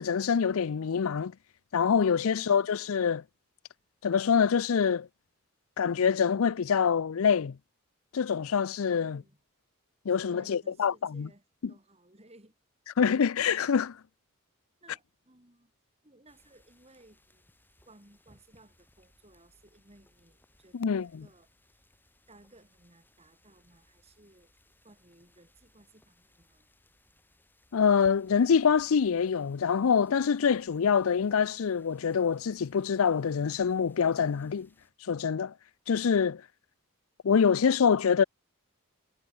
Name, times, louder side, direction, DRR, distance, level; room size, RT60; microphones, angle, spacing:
voice 1, 0.0-1.3 1.7-3.2 4.0-5.1 5.8-7.6 8.1-9.2 10.1-11.3 11.6-11.7 13.0-14.0 20.7-21.3 27.7-34.7 35.0-35.5 35.9-36.4 37.2-38.2, left 6 dB, 70° left, 0.5 m, -25 dB
voice 2, 2.3-3.0 9.0-9.4 10.2-12.5 14.8-15.7 16.0-17.5 17.8-21.5 22.3-24.5 24.8-26.7, right 1 dB, 30° right, 4.2 m, -59 dB
sound 1, 16.3-34.9, left 1 dB, 10° left, 6.5 m, -65 dB
head